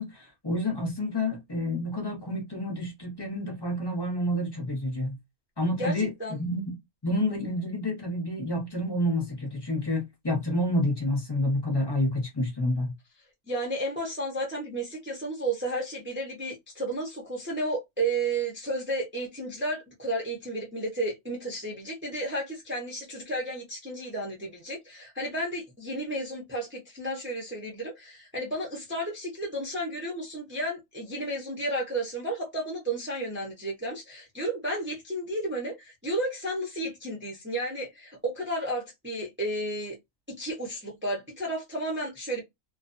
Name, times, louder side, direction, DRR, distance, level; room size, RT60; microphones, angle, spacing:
voice 1, 0.0-5.2 5.6-12.9, left 1 dB, 20° left, 0.8 m, -29 dB
voice 2, 13.5-40.0 40.3-42.4, right 1 dB, 15° right, 0.4 m, -32 dB
2.5 x 2.2 x 2.5 m
omnidirectional pair, 1.6 m